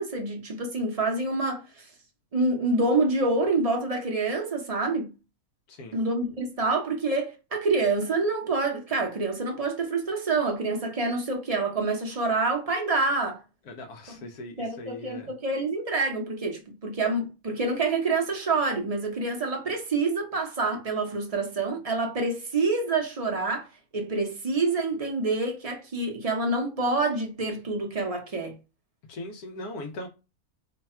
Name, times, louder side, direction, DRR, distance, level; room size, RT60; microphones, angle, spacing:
voice 1, 0.0-1.9 2.3-5.1 5.9-13.4 14.6-23.7 23.9-28.6, right 3 dB, 30° right, 0.7 m, -27 dB
voice 2, 5.7-6.0 13.7-15.3 29.1-30.1, left 1 dB, 80° left, 1.3 m, -39 dB
3.2 x 2.2 x 4.2 m
omnidirectional pair, 1.6 m